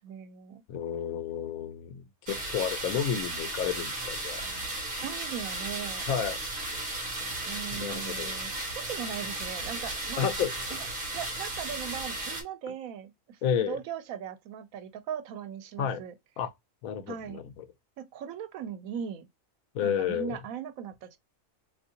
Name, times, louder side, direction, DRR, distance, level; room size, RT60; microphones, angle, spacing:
voice 1, 0.0-0.6 5.0-6.0 7.5-10.3 10.7-10.8 11.1-16.1 17.1-17.4 18.0-19.3 19.8-21.2, right 8 dB, 90° right, 1.0 m, -39 dB
voice 2, 0.7-4.4 6.1-6.4 7.7-8.4 10.2-10.8 13.4-13.8 15.8-16.0 16.4-16.5 16.8-17.7 19.7-20.4, left 8 dB, 85° left, 1.0 m, -31 dB
sound 1, 2.3-12.4, right 2 dB, 45° right, 1.1 m, -35 dB
3.5 x 2.7 x 2.7 m
omnidirectional pair, 1.4 m